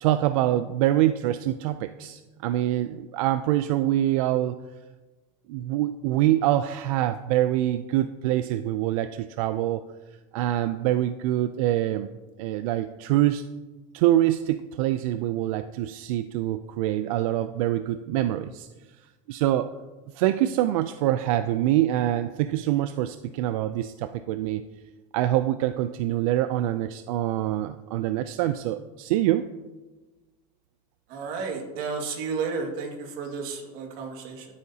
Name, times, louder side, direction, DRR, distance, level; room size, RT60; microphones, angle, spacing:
voice 1, 0.0-4.6 5.5-9.8 10.3-12.1 12.4-13.4 13.9-18.7 19.3-19.7 20.1-24.6 25.1-29.5, right 13 dB, 85° right, 11 dB, 0.4 m, -25 dB
voice 2, 31.1-34.5, right 5 dB, 55° right, 2 dB, 2.0 m, -32 dB
13.5 x 8.5 x 2.8 m, 1.2 s
supercardioid pair, 150°, 17 cm